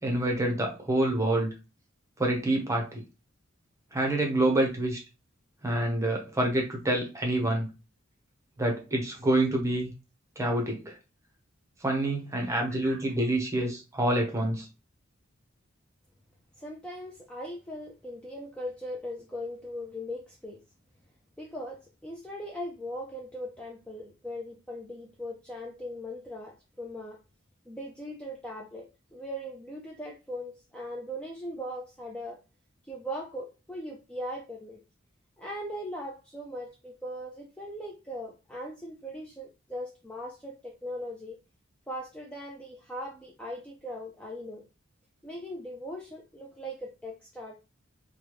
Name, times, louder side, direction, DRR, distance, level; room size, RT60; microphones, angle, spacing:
voice 1, 0.0-1.5 2.2-3.0 3.9-5.0 5.6-7.7 8.6-9.9 10.4-11.0 11.8-14.7, right 1 dB, 15° right, 0.8 m, -27 dB
voice 2, 12.7-13.0 16.6-20.6 21.4-27.2 27.7-32.4 32.8-34.8 35.4-41.4 41.9-44.6 45.2-47.5, equal, 5° left, 0.4 m, -39 dB
3.3 x 2.2 x 3.0 m
head